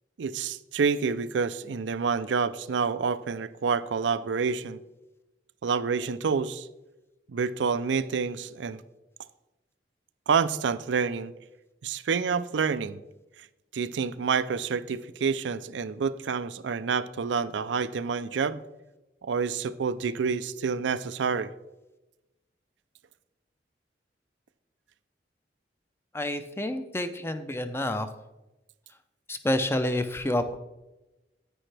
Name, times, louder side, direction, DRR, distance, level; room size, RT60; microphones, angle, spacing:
voice 1, 0.2-4.8 5.6-6.7 7.3-8.8 10.3-11.3 11.8-13.0 13.7-18.6 19.2-21.5, right 5 dB, 85° right, 14 dB, 0.4 m, -28 dB
voice 2, 26.1-28.1 29.3-30.6, left 1 dB, 15° left, 9 dB, 0.5 m, -28 dB
9.9 x 9.0 x 3.3 m, 1.0 s
head